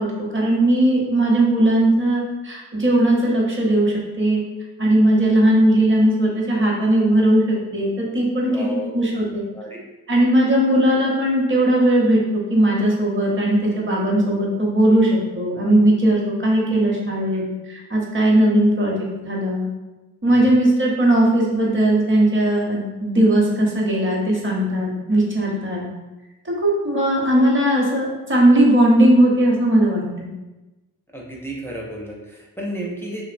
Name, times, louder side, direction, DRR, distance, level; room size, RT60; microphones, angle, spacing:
voice 1, 0.0-4.4 4.8-8.7 8.9-9.4 10.1-17.4 17.7-19.7 20.2-25.8 26.4-30.3, right 1 dB, 35° right, -3 dB, 0.8 m, -18 dB
voice 2, 8.5-8.9 9.5-9.8 20.3-20.5 31.1-33.2, equal, 5° left, -3 dB, 0.5 m, -32 dB
2.5 x 2.0 x 2.5 m, 1.1 s
cardioid pair, 45°, 35 cm